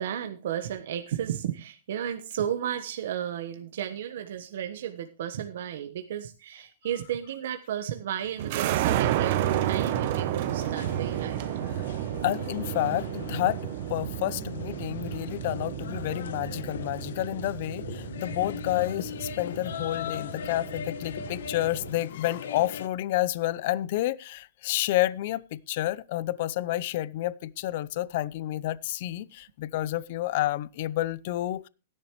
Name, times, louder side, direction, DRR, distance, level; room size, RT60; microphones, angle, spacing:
voice 1, 0.0-11.5, right 10 dB, 55° right, 1.1 m, -33 dB
sound 1, 8.4-22.0, right 12 dB, 35° right, 0.8 m, -32 dB
sound 2, 9.2-22.9, left 8 dB, 70° left, 1.3 m, -40 dB
voice 2, 12.2-13.6 13.9-31.7, left 15 dB, 40° left, 0.6 m, -29 dB
16.0 x 11.0 x 3.1 m
hypercardioid pair, 175°, 0 cm